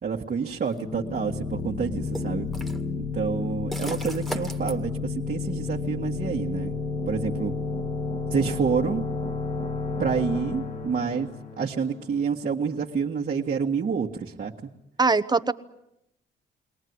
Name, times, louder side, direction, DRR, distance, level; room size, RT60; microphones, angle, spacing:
voice 1, 0.0-2.5 3.0-6.7 7.1-7.5 8.3-9.0 10.0-11.3 11.6-14.5, right 6 dB, 45° right, -1 dB, 1.7 m, -28 dB
sound 1, 0.6-0.8 2.1-2.8 3.7-4.7, right 1 dB, ahead, 2.0 m, -36 dB
sound 2, 0.8-12.3, left 4 dB, 35° left, 1.9 m, -31 dB
voice 2, 15.0-15.5, right 4 dB, 20° right, 11 dB, 1.0 m, -21 dB
22.5 x 18.0 x 9.6 m, 0.82 s
cardioid pair, 90°, 20 cm